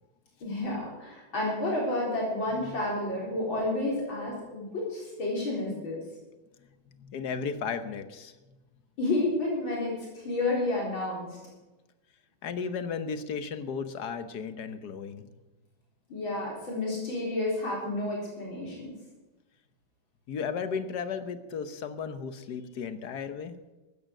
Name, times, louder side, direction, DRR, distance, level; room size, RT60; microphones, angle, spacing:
voice 1, 0.4-6.0 9.0-11.4 16.1-19.0, left 2 dB, 80° left, -3 dB, 4.9 m, -30 dB
voice 2, 7.0-8.3 12.4-15.3 20.3-23.6, left 6 dB, 60° left, 10 dB, 1.5 m, -35 dB
15.0 x 12.5 x 6.6 m, 1.1 s
omnidirectional pair, 2.1 m